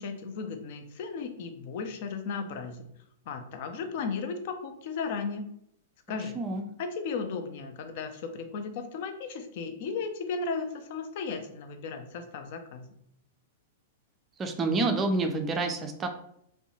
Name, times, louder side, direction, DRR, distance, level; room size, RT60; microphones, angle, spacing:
voice 1, 0.0-2.9 3.3-5.5 6.1-6.4 6.8-12.9, left 5 dB, 50° left, 6 dB, 0.4 m, -35 dB
voice 2, 6.3-6.7 14.4-16.1, right 3 dB, 20° right, 4 dB, 0.4 m, -28 dB
2.6 x 2.1 x 2.7 m, 0.72 s
figure-of-eight pair, 100°, 0 cm